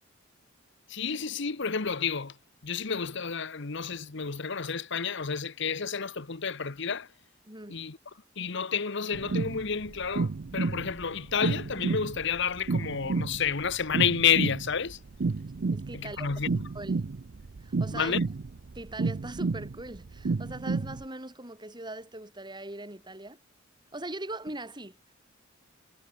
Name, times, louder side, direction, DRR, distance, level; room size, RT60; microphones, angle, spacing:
voice 1, 0.9-2.3 2.6-7.1 7.7-8.0 8.4-15.0 15.9-16.6 17.9-18.2, left 6 dB, 65° left, 1.1 m, -30 dB
voice 2, 7.5-7.8 15.7-16.3 16.7-17.1 17.6-18.2 18.7-23.4 23.9-25.0, right 2 dB, 20° right, 6.9 m, -40 dB
sound 1, 9.1-21.0, right 3 dB, 55° right, 0.5 m, -31 dB
head